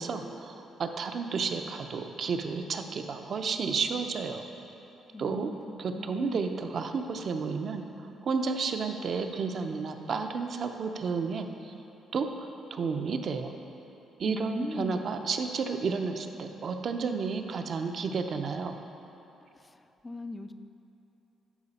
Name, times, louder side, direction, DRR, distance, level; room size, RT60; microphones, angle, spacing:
voice 1, 0.0-4.5 5.2-5.5 5.8-11.7 12.1-13.5 14.2-18.8, right 5 dB, 55° right, 6 dB, 0.6 m, -32 dB
voice 2, 5.1-6.4 14.2-15.0 19.5-20.5, left 2 dB, 20° left, 10 dB, 0.4 m, -38 dB
12.0 x 4.9 x 4.2 m, 2.9 s
cardioid pair, 90°, 0 cm